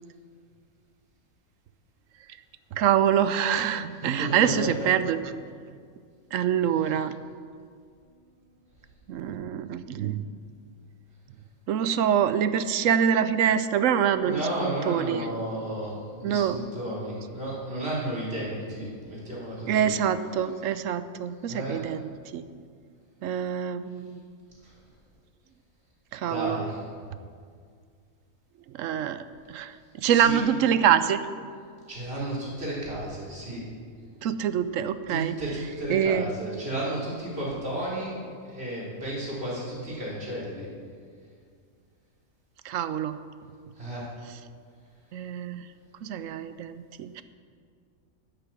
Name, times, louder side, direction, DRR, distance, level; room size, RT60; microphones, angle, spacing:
voice 1, 2.8-5.2 6.3-7.1 9.1-10.3 11.7-15.3 16.2-16.6 19.7-22.4 23.2-24.2 26.1-26.6 28.8-29.2 29.5-29.7 30.0-31.3 34.2-35.3 35.9-36.3 42.6-43.2 45.1-45.6 46.0-47.2, right 9 dB, 75° right, 13 dB, 0.9 m, -25 dB
voice 2, 4.0-4.7 6.9-7.0 14.2-15.9 16.2-19.9 21.5-21.8 26.2-26.8 30.1-30.4 31.9-33.6 35.1-38.1 38.4-40.7 43.8-44.0, right 1 dB, 45° right, -6 dB, 3.6 m, -33 dB
9.7 x 9.0 x 7.1 m, 2.1 s
omnidirectional pair, 1.4 m